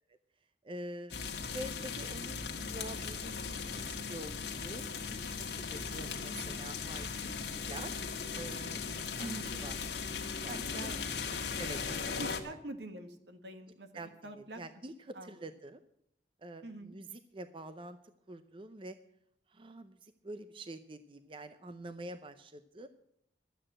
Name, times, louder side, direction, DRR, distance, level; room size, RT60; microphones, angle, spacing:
voice 1, 0.6-9.3 9.6-9.7 10.4-10.6 11.6-12.1 13.9-15.8 16.4-18.0 18.3-19.0 19.5-22.9, right 1 dB, 30° right, 10 dB, 0.6 m, -47 dB
sound 1, 1.1-12.4, left 5 dB, 65° left, 1.6 m, -38 dB
voice 2, 9.2-9.6 10.5-11.0 12.2-13.9 14.2-14.6 15.1-15.4 16.6-16.9, right 2 dB, 75° right, 8 dB, 1.6 m, -44 dB
12.5 x 8.9 x 7.5 m, 0.74 s
head